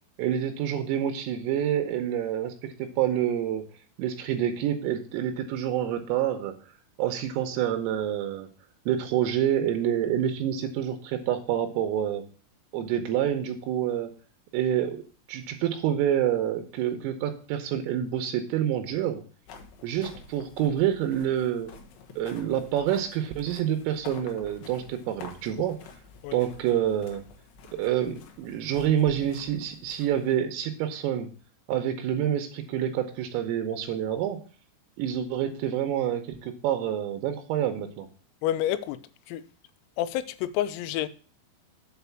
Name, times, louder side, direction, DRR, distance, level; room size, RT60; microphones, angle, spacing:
voice 1, 0.2-3.6 4.0-6.5 7.0-8.5 8.9-12.2 12.7-14.1 14.5-15.0 15.3-19.2 19.8-21.7 22.2-25.8 26.3-27.2 27.7-31.3 31.7-34.4 35.0-38.1, right 10 dB, 80° right, 3.5 m, -27 dB
sound 1, 19.4-30.4, left 5 dB, 70° left, 3.2 m, -49 dB
voice 2, 38.4-39.0 39.3-39.4 40.0-41.1, left 12 dB, 90° left, 3.3 m, -28 dB
8.2 x 4.1 x 7.0 m
omnidirectional pair, 6.0 m